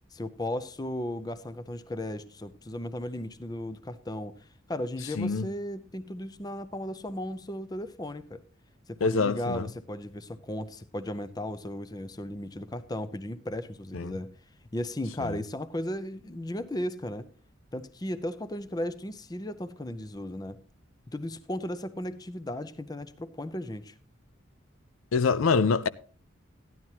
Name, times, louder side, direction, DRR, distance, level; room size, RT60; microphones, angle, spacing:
voice 1, 0.1-8.4 8.9-14.3 14.7-17.3 17.7-20.6 21.1-23.9, left 1 dB, 20° left, 0.5 m, -35 dB
voice 2, 9.0-9.7 13.9-14.1 15.2-15.4 25.1-25.9, left 4 dB, 85° left, 0.5 m, -25 dB
14.5 x 11.0 x 2.9 m
head